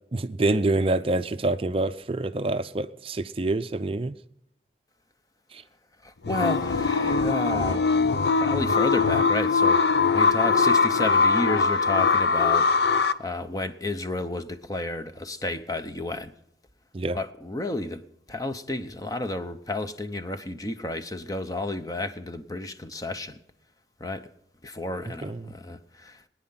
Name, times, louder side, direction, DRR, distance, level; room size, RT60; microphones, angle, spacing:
voice 1, 0.1-4.1 5.5-5.6 16.9-17.2 25.2-25.5, right 2 dB, 30° right, 0.5 m, -26 dB
voice 2, 6.0-16.3 17.1-23.4 24.0-24.3 24.6-26.2, left 2 dB, 20° left, 0.8 m, -32 dB
sound 1, 6.2-13.1, left 4 dB, 70° left, 0.8 m, -21 dB
21.5 x 9.9 x 5.8 m
head